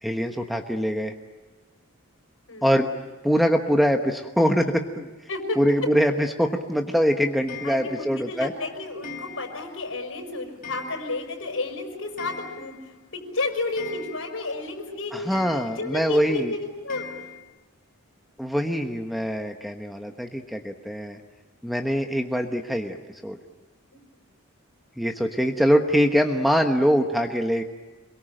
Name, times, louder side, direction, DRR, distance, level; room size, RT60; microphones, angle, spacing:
voice 1, 0.0-1.1 2.6-2.9 3.2-5.1 5.6-8.5 15.1-16.5 18.4-21.2 21.6-23.0 23.2-23.4 25.0-27.6, equal, ahead, 4 dB, 1.2 m, -23 dB
Clock, 7.5-8.2 9.0-9.8 10.1-10.2 10.6-11.4 11.7-11.8 12.0-13.0 13.3-13.4 13.8-14.6 15.3-16.0 16.9-17.4, left 6 dB, 40° left, 4.7 m, -41 dB
voice 2, 7.6-15.3 15.8-17.1 23.9-24.0, left 3 dB, 70° left, 4 dB, 5.7 m, -32 dB
27.0 x 23.0 x 9.0 m, 1.2 s
head